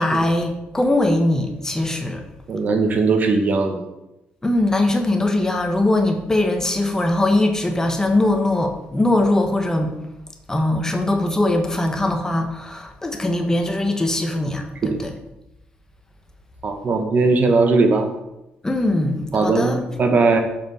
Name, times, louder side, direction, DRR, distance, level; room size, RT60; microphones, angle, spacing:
voice 1, 0.0-2.2 4.4-9.9 10.5-15.1 18.6-19.8, left 1 dB, 15° left, 4 dB, 1.2 m, -21 dB
voice 2, 2.5-3.8 14.8-15.0 16.6-18.1 19.3-20.4, right 3 dB, 45° right, 5 dB, 1.3 m, -19 dB
6.8 x 5.6 x 6.3 m, 0.92 s
cardioid pair, 95°, 4 cm